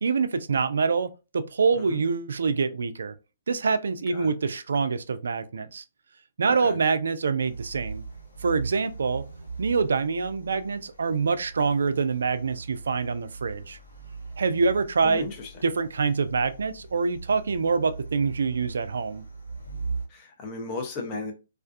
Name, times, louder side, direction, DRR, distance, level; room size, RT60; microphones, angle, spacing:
voice 1, 0.0-3.1 3.5-5.8 6.4-8.0 8.4-9.2 9.6-13.8 14.4-15.3 15.6-19.2, right 5 dB, 70° right, 0.3 m, -25 dB
voice 2, 6.5-6.8 15.0-15.6 20.1-21.3, left 3 dB, 30° left, 0.7 m, -35 dB
sound 1, 7.4-20.1, right 4 dB, 90° left, 0.9 m, -39 dB
2.4 x 2.2 x 2.4 m
figure-of-eight pair, 130°, 0 cm